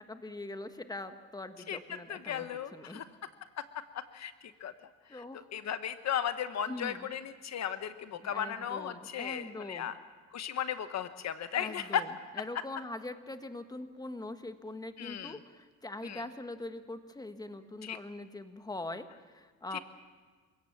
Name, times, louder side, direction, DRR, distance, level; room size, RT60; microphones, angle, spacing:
voice 1, 0.0-3.0 5.1-5.7 6.7-7.1 8.2-9.9 11.5-19.8, left 2 dB, 15° left, 8 dB, 1.5 m, -43 dB
voice 2, 2.1-3.0 4.1-4.3 4.6-4.7 5.1-5.2 5.5-9.9 10.3-12.0 15.0-15.4 16.0-16.2 17.8-18.0 19.7-19.8, left 9 dB, 60° left, 11 dB, 1.0 m, -35 dB
28.5 x 17.0 x 7.3 m, 1.5 s
cardioid pair, 90°, 30 cm